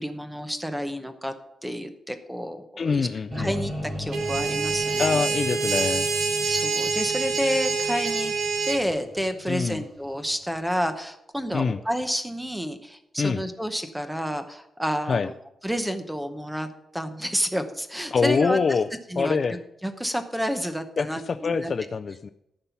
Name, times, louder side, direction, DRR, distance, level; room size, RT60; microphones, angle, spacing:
voice 1, 0.0-1.3 1.6-3.1 3.4-5.2 6.4-8.3 8.6-15.3 15.6-18.8 19.1-21.7, equal, 5° right, 8 dB, 0.8 m, -30 dB
voice 2, 2.8-3.5 5.0-6.1 9.5-9.8 11.5-11.8 13.2-13.4 15.1-15.3 18.1-18.9 19.2-19.6 21.0-22.3, left 5 dB, 40° left, 10 dB, 0.3 m, -25 dB
sound 1, 3.3-10.4, equal, 30° right, 3.2 m, -37 dB
sound 2, 4.1-8.8, right 5 dB, 55° right, 1.1 m, -26 dB
14.0 x 5.5 x 5.8 m, 0.83 s
wide cardioid pair, 175°, 0 cm